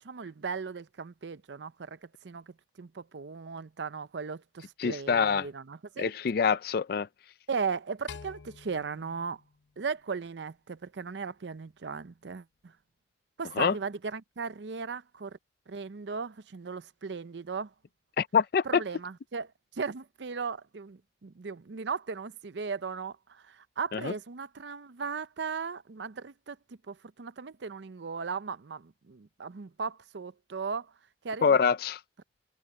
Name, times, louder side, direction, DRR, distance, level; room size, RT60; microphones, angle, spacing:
voice 1, 0.0-6.1 7.5-9.4 9.8-12.7 13.4-15.4 15.7-17.7 18.6-30.9 31.2-31.6, right 5 dB, 75° right, 0.6 m, -37 dB
voice 2, 4.8-5.5 6.0-7.1 13.6-13.7 18.2-18.8 23.9-24.1 31.4-32.0, left 6 dB, 55° left, 0.4 m, -25 dB
sound 1, 8.1-10.5, left 5 dB, 85° left, 0.9 m, -48 dB
head